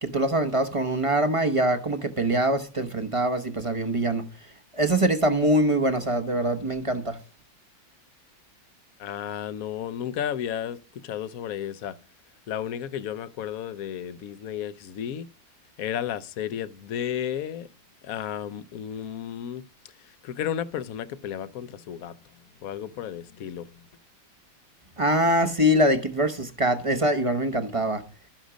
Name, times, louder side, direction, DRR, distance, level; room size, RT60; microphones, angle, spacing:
voice 1, 0.0-4.3 4.7-7.2 25.0-28.0, right 1 dB, 25° right, 0.7 m, -23 dB
voice 2, 9.0-12.0 12.5-15.3 15.8-17.7 18.0-19.6 20.0-22.2 22.6-23.7, left 9 dB, 60° left, 1.0 m, -33 dB
12.5 x 10.5 x 5.1 m
omnidirectional pair, 2.0 m